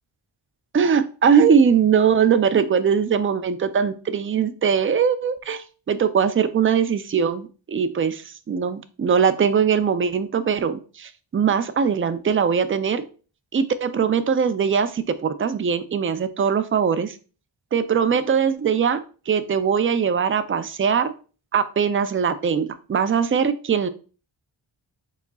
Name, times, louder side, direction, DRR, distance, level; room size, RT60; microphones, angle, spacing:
voice 1, 0.7-13.0 13.5-17.1 17.7-21.1 21.5-23.9, right 7 dB, 30° right, 12 dB, 0.4 m, -21 dB
4.8 x 4.0 x 2.3 m, 0.37 s
wide cardioid pair, 70°, 48 cm